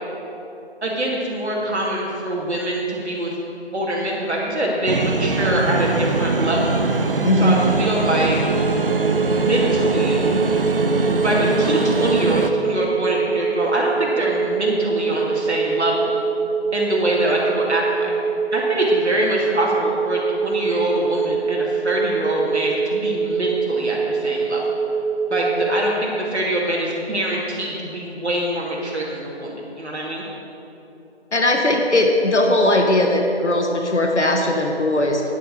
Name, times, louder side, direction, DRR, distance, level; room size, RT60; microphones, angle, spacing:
voice 1, 0.8-3.3 3.7-6.8 7.4-8.4 9.3-10.2 11.2-16.2 16.7-18.1 18.5-24.6 25.3-30.2, right 1 dB, 75° right, -3 dB, 2.2 m, -24 dB
sound 1, 4.9-12.5, right 3 dB, 55° right, 0.7 m, -22 dB
voice 2, 7.2-7.6 31.3-35.2, left 1 dB, 90° left, 2 dB, 1.3 m, -18 dB
sound 2, 8.4-25.6, right 5 dB, 5° right, 1.2 m, -24 dB
10.0 x 7.7 x 5.2 m, 2.9 s
figure-of-eight pair, 165°, 34 cm